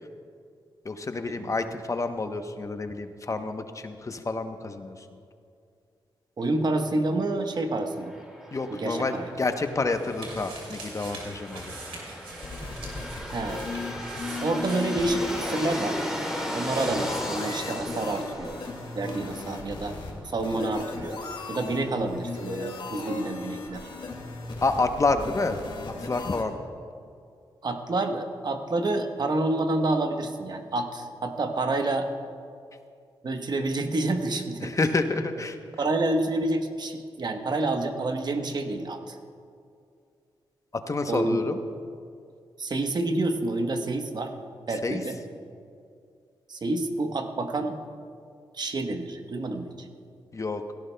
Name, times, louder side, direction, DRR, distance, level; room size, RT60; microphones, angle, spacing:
voice 1, 0.8-5.0 8.5-11.8 24.6-25.6 25.9-26.5 34.6-35.6 40.9-41.6 44.8-45.0 50.3-50.7, left 3 dB, 35° left, 7 dB, 0.8 m, -28 dB
voice 2, 6.4-8.2 8.7-9.3 13.3-13.6 14.4-16.0 16.5-18.6 18.9-19.9 20.2-21.2 21.5-23.9 27.6-32.1 33.2-34.7 35.8-39.2 41.1-41.4 42.6-44.3 44.7-45.2 46.5-47.8 48.5-49.9, right 2 dB, 50° right, 6 dB, 1.0 m, -28 dB
sound 1, 8.0-25.5, equal, 5° right, 3.0 m, -38 dB
sound 2, 9.2-18.8 19.1-19.2, right 2 dB, 85° right, 2.9 m, -44 dB
sound 3, 12.3-26.4, left 3 dB, 65° left, 2.0 m, -37 dB
16.5 x 16.5 x 2.2 m, 2.4 s
cardioid pair, 60°, 9 cm